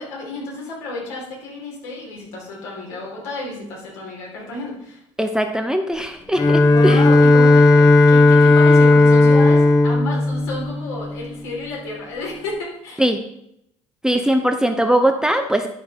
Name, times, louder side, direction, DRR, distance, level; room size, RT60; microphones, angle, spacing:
voice 1, 0.0-5.0 6.6-13.1, left 2 dB, 65° left, -3 dB, 3.2 m, -31 dB
voice 2, 5.2-7.0 13.0-13.2 14.0-15.7, right 1 dB, 5° right, 6 dB, 0.7 m, -20 dB
Bowed string instrument, 6.4-11.4, left 2 dB, 25° left, 1.1 m, -13 dB
11.0 x 6.0 x 3.7 m, 0.77 s
figure-of-eight pair, 60°, 17 cm